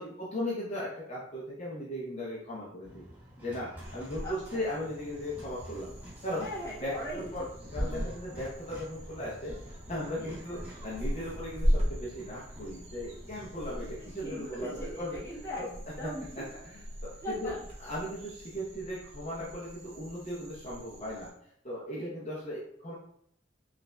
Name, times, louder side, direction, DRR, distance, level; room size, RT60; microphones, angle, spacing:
voice 1, 0.0-3.0 3.4-5.9 6.2-6.5 6.8-7.5 7.7-15.2 15.6-15.7 16.0-16.1 16.4-17.5 17.8-21.3 21.6-22.9, left 1 dB, 40° left, -6 dB, 0.7 m, -37 dB
sound 1, 2.8-19.1, equal, 10° right, 1.5 m, -51 dB
sound 2, 3.8-21.3, equal, 35° right, 1.0 m, -38 dB
voice 2, 4.2-4.6 6.4-7.3 7.8-8.2 10.2-10.4 13.7-16.4 17.2-17.7 21.9-22.1, equal, 15° left, -7 dB, 1.2 m, -40 dB
5.4 x 2.5 x 2.2 m, 0.70 s
head